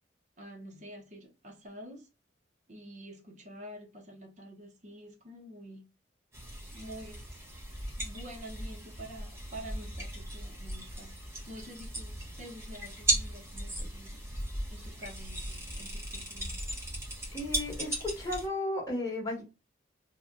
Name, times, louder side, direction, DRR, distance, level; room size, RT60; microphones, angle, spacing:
voice 1, 0.4-2.1 2.7-5.8 6.7-7.3 7.8-11.1 11.5-14.3 14.7-16.6, equal, 40° right, 0.9 m, -48 dB
sound 1, 6.3-18.5, right 1 dB, 15° right, 0.8 m, -37 dB
voice 2, 17.3-19.4, left 1 dB, 20° left, 1.2 m, -34 dB
2.9 x 2.3 x 3.7 m
head